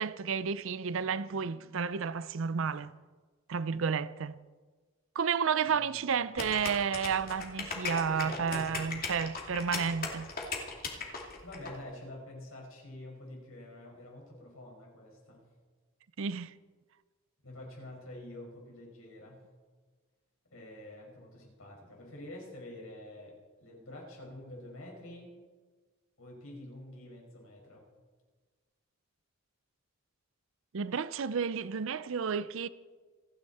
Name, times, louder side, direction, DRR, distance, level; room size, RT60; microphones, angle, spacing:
voice 1, 0.0-2.9 3.5-4.4 5.1-10.3 16.2-16.5 30.7-32.7, right 6 dB, 65° right, 0.5 m, -31 dB
voice 2, 5.7-6.0 7.8-9.0 11.4-15.5 17.4-19.4 20.5-25.3 26.2-27.9, left 1 dB, 80° left, 5.5 m, -47 dB
sound 1, 6.4-11.7, left 4 dB, 45° left, 2.6 m, -37 dB
28.0 x 10.0 x 4.3 m
head